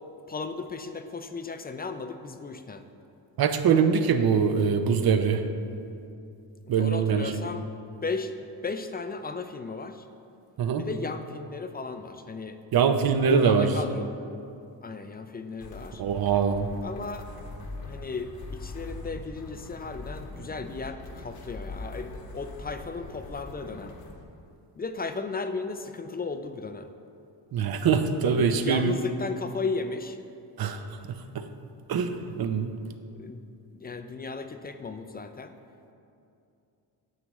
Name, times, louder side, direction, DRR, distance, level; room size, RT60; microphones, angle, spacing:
voice 1, 0.3-2.8 6.7-7.7 8.0-10.1 10.8-12.6 13.2-14.1 14.8-16.0 16.8-17.3 17.8-23.9 24.8-26.9 28.2-30.2 33.1-33.4 33.8-35.5, left 4 dB, 25° left, 8 dB, 0.3 m, -35 dB
voice 2, 3.4-5.4 6.7-7.3 10.6-10.8 12.7-13.7 16.0-16.7 27.5-28.9 30.6-30.8 31.9-32.1 32.4-32.7, right 6 dB, 55° right, 8 dB, 0.7 m, -23 dB
sound 1, 15.6-24.2, left 2 dB, 55° left, 1.0 m, -42 dB
9.4 x 7.1 x 3.1 m, 2.6 s
cardioid pair, 80°, 44 cm